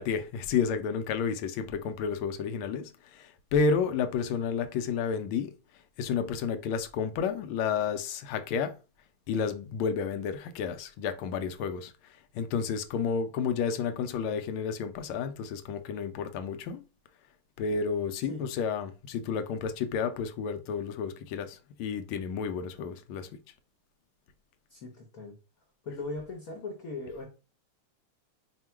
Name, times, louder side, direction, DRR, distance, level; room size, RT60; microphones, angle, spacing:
voice 1, 0.0-5.5 6.0-8.8 9.3-11.9 12.3-16.8 17.6-23.4, left 6 dB, 80° left, 1.4 m, -31 dB
voice 2, 24.7-25.4 25.8-27.3, left 3 dB, 55° left, 1.1 m, -39 dB
3.5 x 2.3 x 4.4 m
omnidirectional pair, 2.3 m